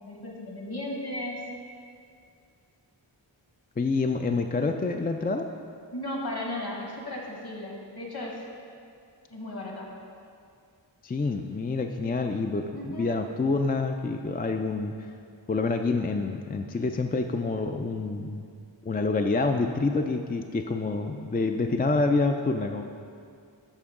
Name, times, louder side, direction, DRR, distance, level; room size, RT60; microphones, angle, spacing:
voice 1, 0.0-1.4 5.9-8.4 9.3-9.9 12.7-13.2, left 1 dB, 55° left, -2 dB, 1.6 m, -35 dB
voice 2, 3.8-5.5 11.0-14.9 15.5-18.5 18.8-22.8, left 3 dB, 25° left, 5 dB, 0.3 m, -27 dB
13.0 x 4.5 x 3.7 m, 2.3 s
wide cardioid pair, 50°, 45 cm